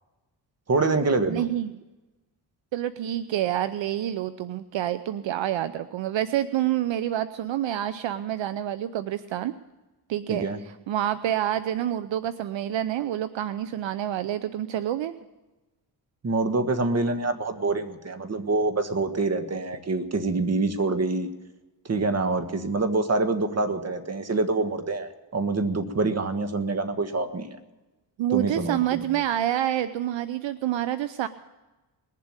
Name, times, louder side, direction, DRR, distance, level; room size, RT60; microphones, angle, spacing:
voice 1, 0.7-1.4 10.3-10.6 16.2-21.3 21.8-27.5 28.3-29.0, right 3 dB, 30° right, 8 dB, 1.6 m, -26 dB
voice 2, 1.3-1.7 2.7-9.5 10.1-10.5 10.9-15.2 28.2-31.3, right 12 dB, 70° right, 13 dB, 0.7 m, -27 dB
20.5 x 7.5 x 8.9 m, 1.1 s
cardioid pair, 95°, 47 cm